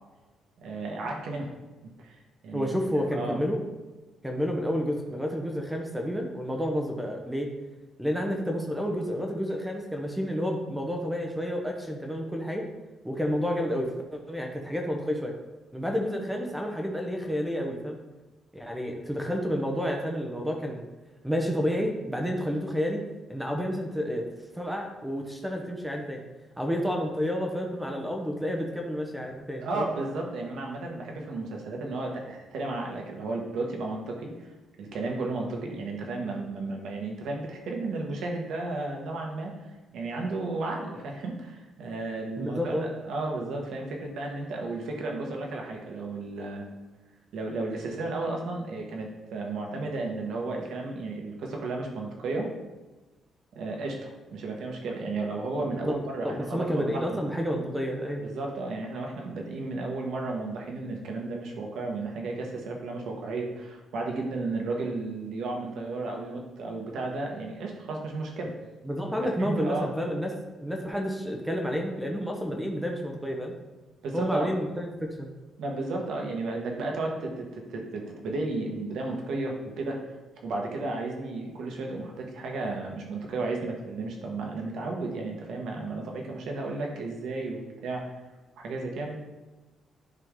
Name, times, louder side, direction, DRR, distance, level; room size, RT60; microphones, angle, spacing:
voice 1, 0.6-1.5 2.0-2.7 3.1-3.4 29.6-34.5 34.8-39.5 39.9-46.6 47.3-52.5 53.5-57.2 58.2-68.5 69.4-69.9 74.0-74.5 75.6-80.0 80.4-88.0 88.6-89.2, right 2 dB, 70° right, 0 dB, 1.5 m, -33 dB
voice 2, 2.5-3.6 4.2-7.5 8.0-12.7 13.0-15.4 15.7-18.0 18.5-20.9 21.2-23.0 23.3-24.3 24.5-26.2 26.6-29.9 42.4-42.9 55.8-55.9 56.2-58.2 68.8-70.3 70.6-73.5 74.1-75.3, equal, 5° right, 2 dB, 0.8 m, -30 dB
10.5 x 3.6 x 3.7 m, 1.1 s
cardioid pair, 145°, 0 cm